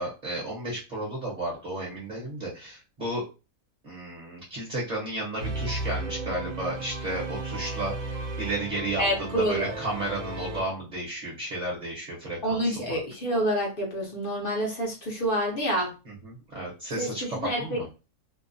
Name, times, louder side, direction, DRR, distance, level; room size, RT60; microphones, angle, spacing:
voice 1, 0.0-3.2 3.8-13.0 16.1-17.9, right 1 dB, 35° right, -4 dB, 0.9 m, -33 dB
sound 1, 5.4-10.6, right 2 dB, 65° right, 1.1 m, -34 dB
voice 2, 9.0-9.7 12.4-15.9 17.0-17.8, equal, 45° left, -1 dB, 0.8 m, -28 dB
2.8 x 2.1 x 2.6 m, 0.30 s
omnidirectional pair, 1.6 m